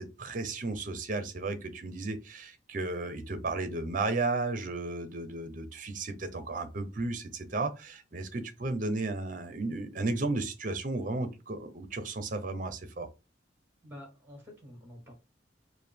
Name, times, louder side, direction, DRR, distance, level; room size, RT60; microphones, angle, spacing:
voice 1, 0.0-13.1, right 3 dB, 45° right, 0.6 m, -34 dB
voice 2, 13.8-15.1, left 1 dB, 10° right, 1.5 m, -48 dB
4.7 x 2.1 x 3.4 m
head